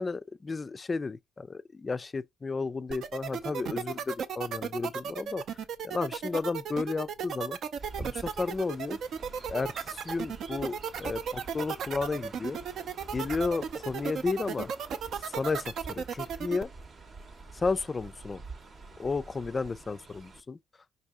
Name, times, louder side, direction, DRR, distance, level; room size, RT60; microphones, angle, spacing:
voice 1, 0.0-5.4 5.8-7.6 8.0-9.0 9.5-12.6 13.1-14.7 15.2-16.7 17.5-18.4 19.0-20.6, left 4 dB, 30° left, 0.3 m, -33 dB
sound 1, 2.9-16.6, right 7 dB, 70° right, 0.5 m, -35 dB
Chirp tweet, 7.8-20.4, right 4 dB, 45° right, 0.8 m, -47 dB
5.3 x 2.6 x 3.5 m
cardioid pair, 90°, 0 cm